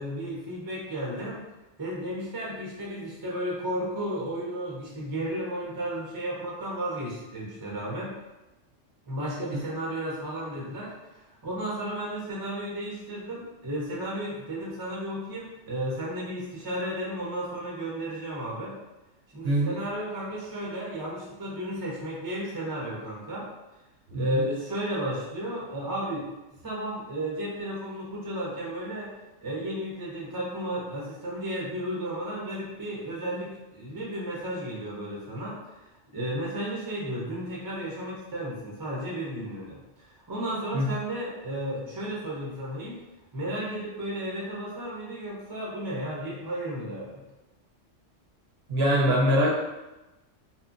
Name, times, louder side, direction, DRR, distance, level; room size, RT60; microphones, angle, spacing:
voice 1, 0.0-1.4 1.8-8.1 9.1-10.9 11.4-18.8 19.3-23.5 24.1-26.3 26.6-29.1 29.4-35.8 36.1-43.0 43.3-47.2, right 1 dB, 30° right, -4 dB, 0.4 m, -33 dB
voice 2, 19.4-19.8 24.1-24.4 40.7-40.9 48.7-49.5, equal, 65° right, -4 dB, 0.8 m, -23 dB
2.9 x 2.1 x 2.4 m, 1.0 s
omnidirectional pair, 1.3 m